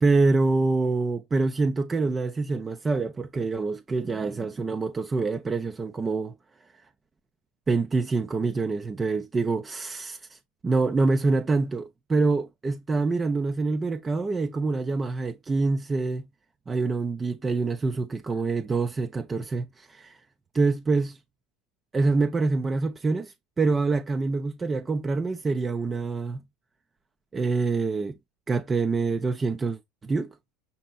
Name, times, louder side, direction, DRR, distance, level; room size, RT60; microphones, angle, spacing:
voice 1, 0.0-6.3 7.7-10.4 10.6-16.2 16.7-20.2 20.5-21.2 21.9-26.4 27.3-28.2 28.5-30.3, right 3 dB, 20° right, 0.5 m, -26 dB
5.3 x 4.1 x 2.4 m
hypercardioid pair, 85°, 0 cm